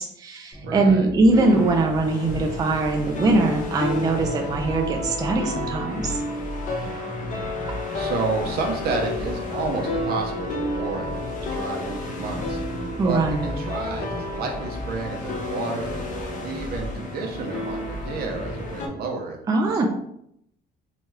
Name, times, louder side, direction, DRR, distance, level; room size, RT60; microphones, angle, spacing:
voice 1, 0.0-6.2 13.0-13.4 19.5-19.9, right 2 dB, 20° right, 2 dB, 0.4 m, -21 dB
sound 1, 0.5-19.0, equal, 15° left, 1.0 m, -36 dB
voice 2, 0.6-1.1 6.8-7.5 7.9-12.6 13.0-19.9, right 4 dB, 65° right, 1 dB, 0.7 m, -31 dB
sound 2, 1.3-18.9, left 2 dB, 50° left, 0.6 m, -32 dB
2.8 x 2.3 x 3.1 m, 0.75 s
cardioid pair, 110°, 17 cm